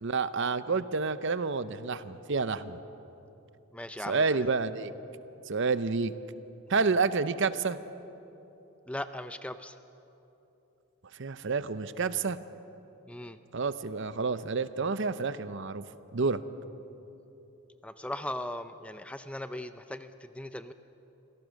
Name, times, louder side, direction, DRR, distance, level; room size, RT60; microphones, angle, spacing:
voice 1, 0.0-2.8 4.1-4.9 5.5-6.1 6.7-7.8 11.2-12.4 13.5-15.8 16.1-16.4, right 4 dB, 55° right, 14 dB, 0.7 m, -29 dB
voice 2, 3.7-4.5 8.9-9.8 13.1-13.4 17.8-20.7, left 1 dB, 5° left, 10 dB, 0.4 m, -38 dB
26.0 x 17.5 x 6.5 m, 3.0 s
head